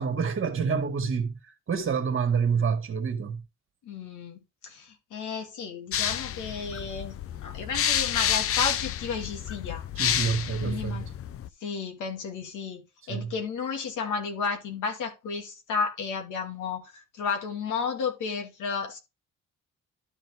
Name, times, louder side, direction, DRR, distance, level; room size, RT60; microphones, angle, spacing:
voice 1, 0.0-1.4 1.7-3.4 10.0-11.0 13.1-13.3, right 6 dB, 45° right, 1.9 m, -27 dB
voice 2, 3.8-7.1 7.4-10.3 10.6-11.1 11.6-19.0, left 5 dB, 85° left, 2.7 m, -33 dB
sound 1, 5.9-11.5, left 10 dB, 50° left, 0.6 m, -29 dB
12.0 x 4.2 x 3.6 m
cardioid pair, 90°, 30 cm